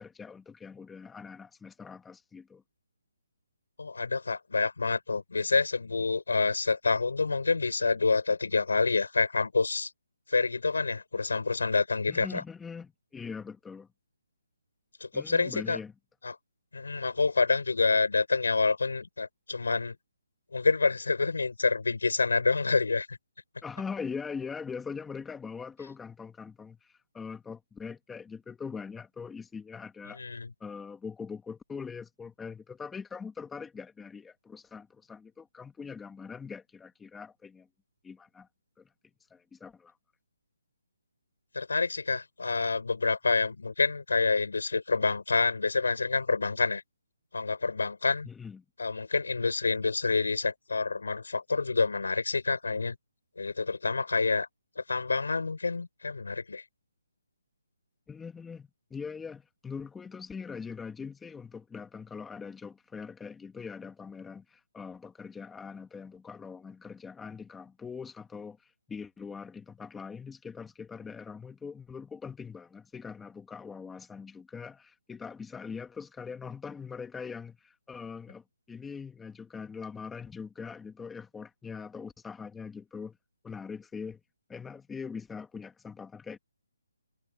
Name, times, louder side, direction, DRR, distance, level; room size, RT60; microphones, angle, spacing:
voice 1, 0.0-2.6 12.1-13.9 15.1-16.0 23.6-30.2 30.6-37.7 38.0-38.5 38.8-38.9 39.3-40.0 48.2-48.6 58.1-83.2 83.4-84.2 84.5-86.4, left 5 dB, 5° left, 1.8 m, -42 dB
voice 2, 3.8-9.9 10.3-12.4 15.0-15.8 16.2-16.3 16.7-20.0 20.5-23.2 30.2-30.5 41.5-46.8 47.3-48.3 48.8-53.0 53.4-54.5 54.8-56.6, left 4 dB, 85° left, 7.4 m, -27 dB
hypercardioid pair, 160°, 0 cm